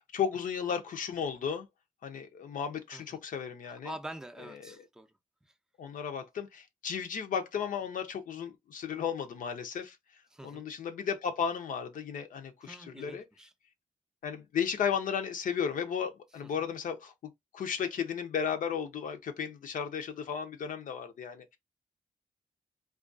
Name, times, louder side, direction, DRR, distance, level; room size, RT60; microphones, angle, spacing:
voice 1, 0.1-1.7 2.0-3.9 4.6-4.8 5.8-10.0 10.4-13.2 14.2-21.6, left 7 dB, 75° left, 0.5 m, -34 dB
voice 2, 3.7-5.1 10.3-10.6 12.6-13.5, right 1 dB, 5° right, 0.4 m, -45 dB
2.3 x 2.2 x 2.5 m
cardioid pair, 65°, 14 cm